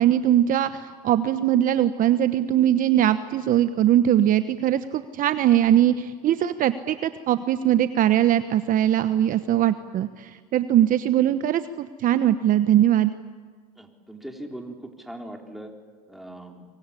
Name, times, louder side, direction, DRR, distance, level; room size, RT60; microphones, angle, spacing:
voice 1, 0.0-13.1, right 11 dB, 45° right, 11 dB, 1.1 m, -21 dB
voice 2, 13.8-15.7 16.1-16.7, right 1 dB, ahead, 2 dB, 3.9 m, -40 dB
24.5 x 24.0 x 9.9 m, 1.5 s
supercardioid pair, 110°, 20 cm